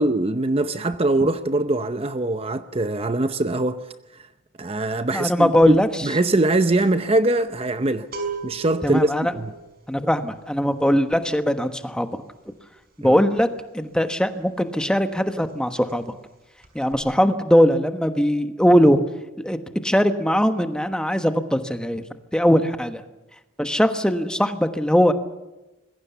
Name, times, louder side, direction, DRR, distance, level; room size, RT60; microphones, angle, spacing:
voice 1, 0.0-3.9 4.6-8.1 8.4-9.5 13.0-13.2, right 2 dB, 30° right, 0.7 m, -22 dB
voice 2, 5.1-5.9 8.8-9.2 9.9-12.2 13.0-13.5 13.7-16.0 16.7-19.0 19.4-19.6 19.8-22.0 22.3-23.0 23.6-25.1, equal, 5° left, 1.2 m, -20 dB
sound 1, 5.6-5.9 6.1-14.7 15.0-15.2 15.5-16.3 16.6-16.9, right 4 dB, 50° right, 5.7 m, -38 dB
26.0 x 21.0 x 7.1 m
head